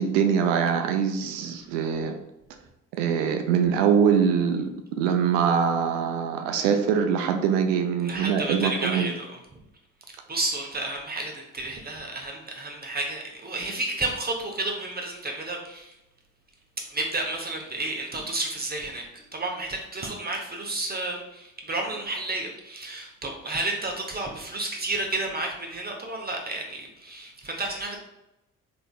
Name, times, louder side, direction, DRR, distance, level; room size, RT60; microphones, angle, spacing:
voice 1, 0.0-2.2 2.9-4.7 5.0-9.1, right 7 dB, 80° right, 5 dB, 0.5 m, -23 dB
voice 2, 8.0-9.3 10.1-15.9 16.9-19.1 19.3-28.0, right 2 dB, 25° right, 1 dB, 0.8 m, -31 dB
3.7 x 3.4 x 2.3 m, 0.91 s
hypercardioid pair, 50°, 37 cm